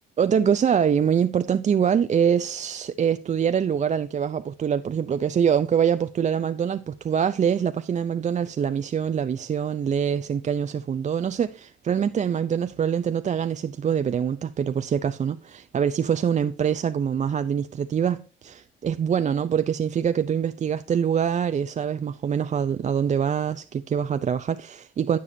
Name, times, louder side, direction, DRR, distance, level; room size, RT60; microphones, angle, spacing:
voice 1, 0.2-25.2, right 8 dB, 35° right, 0.5 m, -24 dB
15.0 x 6.9 x 2.7 m
cardioid pair, 90°, 20 cm